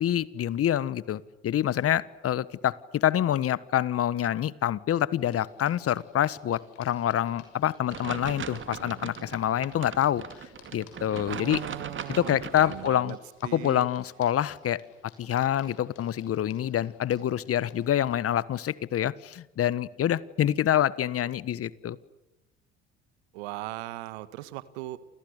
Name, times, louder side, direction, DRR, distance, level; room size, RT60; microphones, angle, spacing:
voice 1, 0.0-11.6 12.1-13.2 13.5-14.8 15.2-22.0, left 11 dB, 45° left, 19 dB, 1.4 m, -26 dB
sound 1, 5.2-17.9, left 7 dB, 70° left, 6.9 m, -55 dB
sound 2, 7.9-12.9, right 7 dB, 35° right, 2.3 m, -39 dB
voice 2, 11.3-13.2 13.4-13.9 23.3-25.0, right 17 dB, 75° right, 14 dB, 1.8 m, -39 dB
29.0 x 28.5 x 6.7 m, 0.98 s
hypercardioid pair, 60°, 32 cm